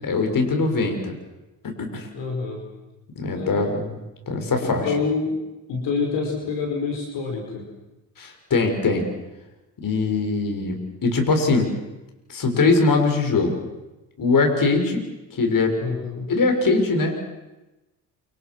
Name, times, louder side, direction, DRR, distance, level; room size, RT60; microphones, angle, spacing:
voice 1, 0.0-1.1 1.6-2.1 3.2-3.8 4.3-4.9 8.2-9.1 9.8-11.7 12.3-13.6 14.2-15.0 15.4-15.7 16.3-17.1, left 3 dB, 50° left, 4 dB, 6.5 m, -21 dB
voice 2, 2.1-2.6 3.3-3.9 4.6-5.4 5.7-7.7 15.8-16.3, left 4 dB, 75° left, 1 dB, 5.4 m, -27 dB
28.0 x 26.5 x 6.3 m, 1.0 s
hypercardioid pair, 55°, 42 cm